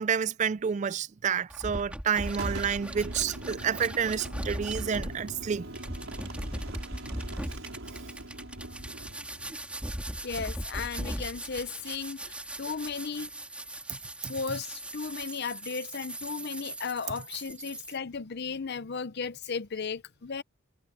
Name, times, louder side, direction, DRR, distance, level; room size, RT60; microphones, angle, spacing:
voice 1, 0.0-5.7 13.9-14.0 14.2-14.3, right 7 dB, 35° right, 0.3 m, -29 dB
sound 1, 1.5-18.0, right 1 dB, 5° right, 2.9 m, -39 dB
Boom, 2.3-11.9, right 1 dB, 80° right, 5.0 m, -43 dB
Wind instrument woodwind instrument, 2.7-9.0, right 1 dB, 60° right, 2.4 m, -49 dB
voice 2, 10.2-13.3 14.3-20.4, left 5 dB, 50° left, 0.6 m, -35 dB
head